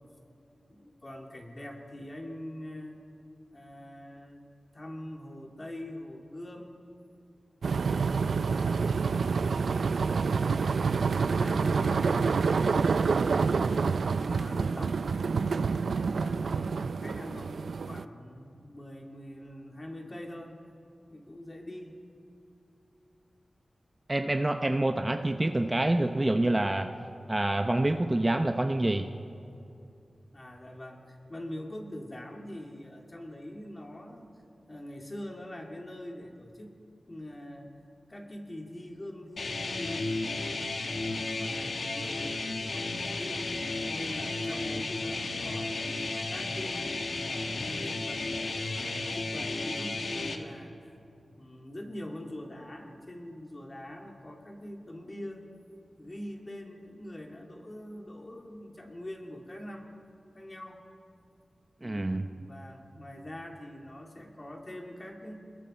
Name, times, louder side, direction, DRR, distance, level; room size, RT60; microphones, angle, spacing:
voice 1, 0.7-3.0 3.5-6.8 7.6-8.7 11.0-15.0 15.7-20.6 21.1-22.0 30.3-34.3 34.7-36.7 37.1-37.8 38.1-40.6 41.1-45.9 46.3-47.2 47.5-51.0 51.4-55.5 56.0-59.9 60.3-60.9 61.8-65.4, left 1 dB, 30° left, 1 dB, 2.6 m, -43 dB
sound 1, 7.6-18.0, right 5 dB, 85° right, 0.4 m, -27 dB
voice 2, 24.1-26.9 27.3-29.1 61.8-62.3, right 1 dB, 20° right, 6 dB, 0.7 m, -27 dB
sound 2, 39.4-50.4, left 2 dB, 65° left, 1.6 m, -33 dB
28.5 x 21.0 x 4.4 m, 2.6 s
wide cardioid pair, 90°, 0 cm